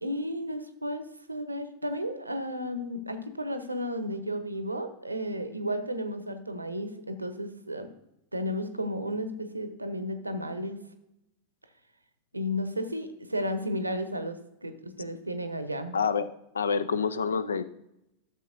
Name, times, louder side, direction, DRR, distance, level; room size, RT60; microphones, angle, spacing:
voice 1, 0.0-7.9 8.3-10.8 12.3-16.0, equal, 85° right, 9 dB, 0.8 m, -33 dB
voice 2, 15.9-16.3 16.5-17.6, left 5 dB, 70° left, 15 dB, 0.5 m, -27 dB
13.0 x 7.0 x 2.6 m, 0.84 s
figure-of-eight pair, 90°, 0 cm